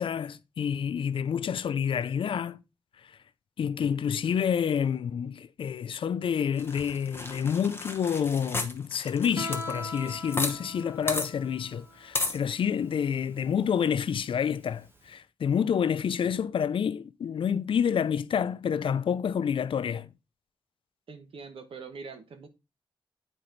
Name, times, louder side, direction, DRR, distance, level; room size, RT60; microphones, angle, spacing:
voice 1, 0.0-2.6 3.6-20.1, left 7 dB, 70° left, 0.4 m, -28 dB
sound 1, 6.6-10.5 10.8-10.9 11.1-11.3 12.1-12.4, left 2 dB, 25° left, 1.0 m, -33 dB
Guitar, 9.4-15.1, left 1 dB, 25° right, 1.1 m, -42 dB
voice 2, 21.1-22.5, right 5 dB, 80° right, 1.2 m, -43 dB
8.9 x 4.4 x 3.9 m
wide cardioid pair, 110°, 9 cm